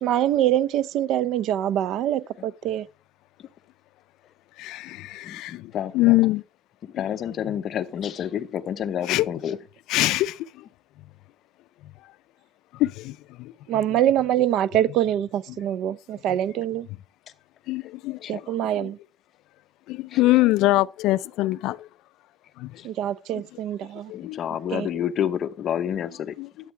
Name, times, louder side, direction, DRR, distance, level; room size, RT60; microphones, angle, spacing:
voice 1, 0.0-2.9 13.7-16.9 18.3-19.0 22.8-24.1 24.7-24.9, right 11 dB, 65° right, 0.6 m, -24 dB
voice 2, 4.6-6.4 7.5-7.6 9.1-9.3 9.9-10.6 12.7-14.0 15.5-15.6 16.3-16.4 17.7-18.9 19.9-21.9 22.6-22.7 23.3-23.6 24.1-24.7 26.4-26.5, left 18 dB, 80° left, 0.4 m, -24 dB
voice 3, 5.2-6.2 6.8-9.6 18.2-18.4 20.1-20.2 24.1-26.3, left 9 dB, 45° left, 0.9 m, -29 dB
13.0 x 8.2 x 3.3 m
cardioid pair, 160°, 0 cm